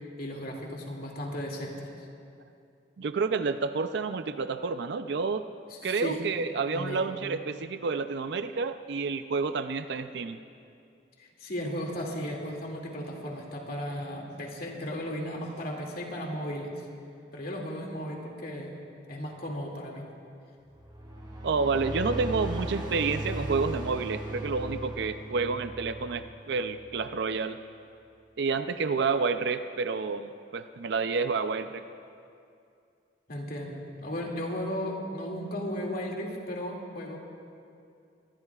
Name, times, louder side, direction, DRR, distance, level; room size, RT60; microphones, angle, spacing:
voice 1, 0.2-1.9 5.7-6.2 6.7-7.0 11.2-16.9 17.3-18.8 19.1-20.0 33.3-37.2, equal, 55° left, -1 dB, 2.4 m, -35 dB
voice 2, 3.0-5.4 5.8-10.4 21.4-27.6 28.4-31.8, right 4 dB, 65° right, 10 dB, 0.5 m, -29 dB
sound 1, 20.7-27.3, right 1 dB, 25° right, 4.0 m, -37 dB
24.0 x 19.5 x 2.4 m, 2.5 s
head